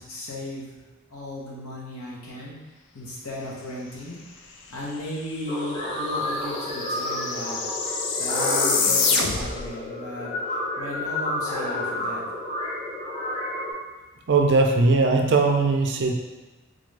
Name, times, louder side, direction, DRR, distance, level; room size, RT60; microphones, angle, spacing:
voice 1, 0.0-2.6 2.9-4.4 4.7-7.6 8.2-12.2, left 1 dB, 90° left, -4 dB, 1.0 m, -36 dB
sound 1, 5.2-5.3 5.5-9.7, left 4 dB, 55° left, 0.4 m, -26 dB
sound 2, 5.5-13.7, left 1 dB, 25° left, 1.1 m, -30 dB
voice 2, 14.3-16.1, right 3 dB, 55° right, 3 dB, 0.4 m, -19 dB
3.8 x 2.5 x 3.2 m, 1.2 s
head